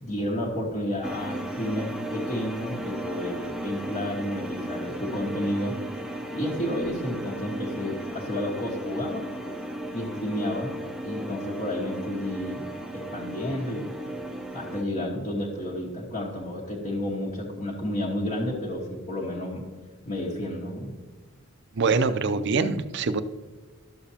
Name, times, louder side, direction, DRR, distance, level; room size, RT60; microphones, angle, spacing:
voice 1, 0.0-5.8 6.3-9.3 9.9-14.0 14.5-19.7 20.1-20.9, left 1 dB, 40° left, -7 dB, 1.4 m, -31 dB
sound 1, 1.0-14.8, right 1 dB, ahead, 0.6 m, -35 dB
voice 2, 21.7-23.2, right 4 dB, 60° right, 11 dB, 0.5 m, -24 dB
12.0 x 6.9 x 2.8 m, 1.4 s
head